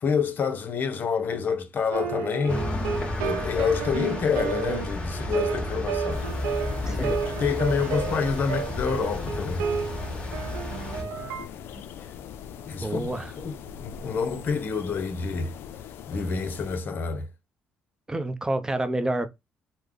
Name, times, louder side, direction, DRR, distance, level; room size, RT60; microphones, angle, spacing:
voice 1, 0.0-2.7 3.2-6.2 6.8-9.6 12.7-13.1 13.4-15.5 16.1-17.3, left 6 dB, 50° left, 0.7 m, -28 dB
sound 1, 1.9-11.5, right 7 dB, 90° right, 0.4 m, -32 dB
sound 2, 2.5-11.0, left 2 dB, 25° left, 1.2 m, -32 dB
sound 3, 6.1-16.8, left 8 dB, 70° left, 0.4 m, -41 dB
voice 2, 6.9-7.2 11.0-11.3 11.7-11.8 12.8-13.3 18.1-19.3, right 1 dB, 15° right, 0.6 m, -29 dB
3.2 x 2.1 x 3.8 m
supercardioid pair, 70°, 4 cm